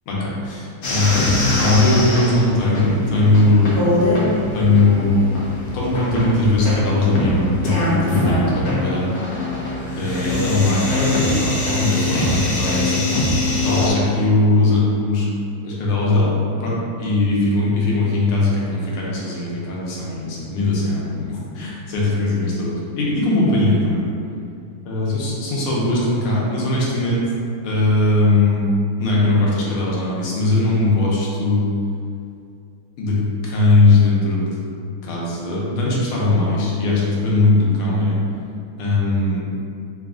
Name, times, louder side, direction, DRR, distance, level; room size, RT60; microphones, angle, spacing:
voice 1, 0.1-3.8 4.5-5.2 5.7-9.1 10.0-13.0 13.3-15.3 15.6-16.3 16.6-24.0 24.9-27.2 27.6-28.7 29.0-31.7 33.0-34.4 35.0-38.2 38.8-39.4, left 2 dB, 85° left, -5 dB, 1.7 m, -19 dB
sound 1, 0.8-13.9, left 2 dB, 65° left, 0.8 m, -22 dB
4.0 x 2.3 x 3.7 m, 2.4 s
omnidirectional pair, 2.4 m